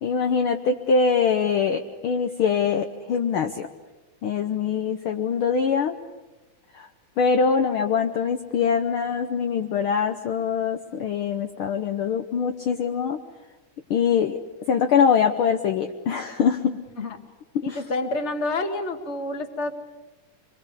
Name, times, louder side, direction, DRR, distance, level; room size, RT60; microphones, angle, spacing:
voice 1, 0.0-3.7 4.2-6.0 6.7-6.9 7.2-13.2 13.9-14.4 14.7-16.8 17.7-17.8, left 6 dB, 70° left, 6 dB, 1.2 m, -23 dB
voice 2, 17.6-19.7, left 2 dB, 30° left, 7 dB, 1.4 m, -28 dB
26.0 x 22.5 x 8.3 m, 1.1 s
omnidirectional pair, 3.6 m